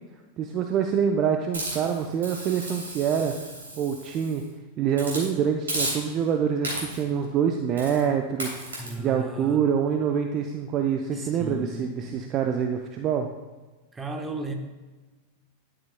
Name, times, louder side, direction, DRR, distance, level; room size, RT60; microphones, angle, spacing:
voice 1, 0.4-3.3 3.8-4.4 4.8-13.3, right 7 dB, 35° right, 5 dB, 0.6 m, -26 dB
Hiss, 1.5-4.4 4.9-5.3 5.7-6.3 6.6-7.1 7.8-8.0 8.4-8.9, right 1 dB, 70° right, 2.9 m, -34 dB
voice 2, 8.8-9.6 11.1-12.2 13.9-14.5, right 2 dB, 15° right, 3 dB, 1.1 m, -35 dB
11.0 x 8.6 x 2.2 m, 1.2 s
figure-of-eight pair, 90°, 0 cm